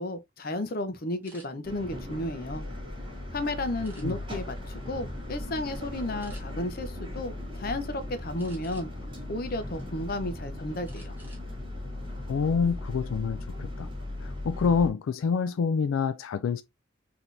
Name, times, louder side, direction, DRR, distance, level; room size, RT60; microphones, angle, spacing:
voice 1, 0.0-2.6 3.3-8.9 9.3-11.2, left 1 dB, 45° left, 0.7 m, -33 dB
sound 1, 1.2-1.5 2.1-3.1 3.8-4.4 4.9-5.2 5.5-5.7 6.2-6.4 8.4-9.1 9.6-10.3 10.8-11.5 11.8-12.0 12.4-12.8, right 2 dB, 10° right, 1.4 m, -54 dB
sound 2, 1.6-14.9, left 1 dB, 25° right, 1.8 m, -38 dB
voice 2, 12.3-13.9 14.2-16.6, left 5 dB, 85° left, 0.3 m, -27 dB
4.1 x 2.9 x 3.2 m
head